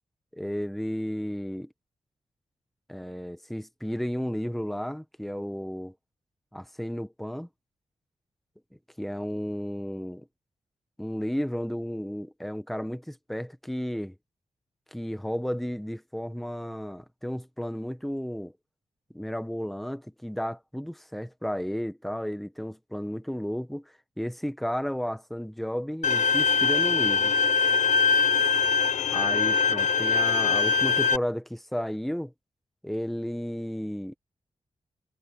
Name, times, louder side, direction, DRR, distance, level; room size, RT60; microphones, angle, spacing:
voice 1, 0.3-1.7 2.9-5.9 6.5-7.5 9.0-10.2 11.0-14.1 14.9-18.5 19.1-27.3 29.1-32.3 32.8-34.2, equal, ahead, 1.4 m, -33 dB
Bowed string instrument, 26.0-31.2, left 5 dB, 80° left, 0.8 m, -23 dB
cardioid pair, 85°, 12 cm